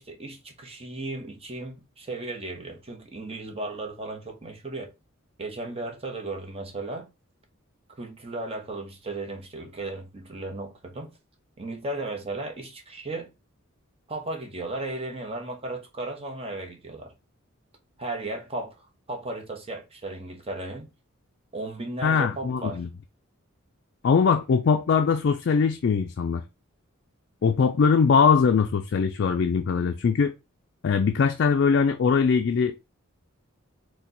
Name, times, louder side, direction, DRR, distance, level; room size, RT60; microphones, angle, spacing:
voice 1, 0.0-4.9 5.4-7.1 8.0-11.1 11.6-13.3 14.1-17.1 18.0-20.9 21.5-22.8, right 2 dB, 30° right, 0.8 m, -35 dB
voice 2, 22.0-22.9 24.0-26.4 27.4-30.3 30.8-32.8, left 5 dB, 55° left, 0.3 m, -21 dB
4.4 x 2.2 x 3.8 m
head